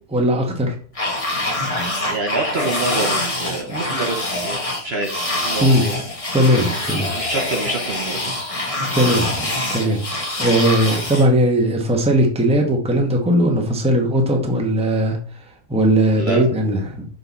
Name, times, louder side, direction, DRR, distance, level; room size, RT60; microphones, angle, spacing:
voice 1, 0.1-0.8 3.7-3.8 5.6-5.9 6.3-7.1 8.9-15.2 15.7-17.1, equal, 5° right, 2 dB, 0.9 m, -18 dB
sound 1, 0.9-11.3, left 1 dB, 25° left, 1.3 m, -25 dB
voice 2, 2.1-6.0 6.8-8.3 16.2-16.4, right 2 dB, 45° right, 1 dB, 1.0 m, -27 dB
6.6 x 3.8 x 4.1 m, 0.42 s
omnidirectional pair, 1.7 m